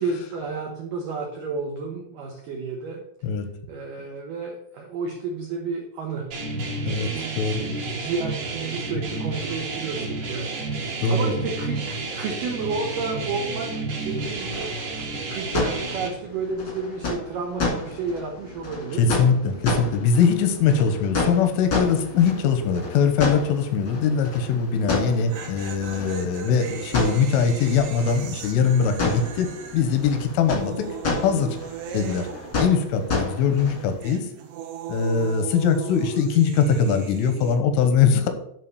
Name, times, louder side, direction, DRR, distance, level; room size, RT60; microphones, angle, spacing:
voice 1, 0.0-3.0 3.7-10.6 11.1-14.8 15.3-19.1, right 4 dB, 90° right, 1 dB, 1.8 m, -31 dB
sound 1, 6.3-16.1, right 3 dB, 50° right, 1.8 m, -31 dB
voice 2, 6.9-7.6 11.0-11.4 19.0-30.9 31.2-31.6 31.9-32.3 32.6-34.3 34.9-38.3, left 6 dB, 85° left, 7 dB, 3.4 m, -22 dB
sound 2, 14.2-34.0, left 3 dB, 50° left, 1.2 m, -31 dB
sound 3, 21.5-21.9 22.2-22.3 24.9-33.3 33.5-37.6, right 8 dB, 70° right, 2.9 m, -39 dB
10.5 x 3.8 x 7.0 m, 0.69 s
omnidirectional pair, 5.7 m